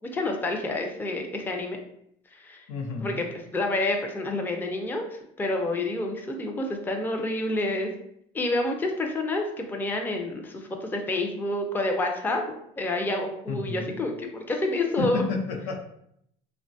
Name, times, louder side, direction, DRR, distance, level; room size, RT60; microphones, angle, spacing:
voice 1, 0.0-1.8 2.3-2.6 3.0-3.3 3.5-7.9 8.3-15.2, left 2 dB, 10° left, 3 dB, 0.4 m, -28 dB
voice 2, 2.7-3.3 13.5-14.0 15.0-15.8, left 4 dB, 85° left, 2 dB, 0.6 m, -31 dB
3.1 x 2.1 x 2.5 m, 0.72 s
supercardioid pair, 105°, 19 cm